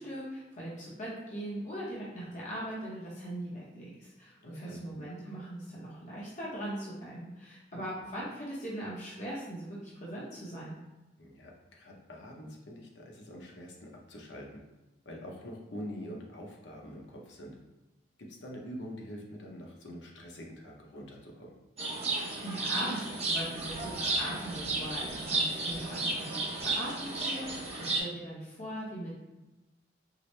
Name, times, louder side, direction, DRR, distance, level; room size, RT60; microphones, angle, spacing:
voice 1, 0.0-10.7 22.4-29.1, right 1 dB, 45° left, -6 dB, 0.8 m, -40 dB
voice 2, 4.4-5.1 7.7-7.8 11.2-14.6 15.0-17.6 18.2-21.5, equal, 90° left, -1 dB, 0.8 m, -45 dB
sound 1, 21.8-28.0, right 2 dB, 35° right, 0.7 m, -33 dB
4.8 x 2.0 x 3.0 m, 1.0 s
head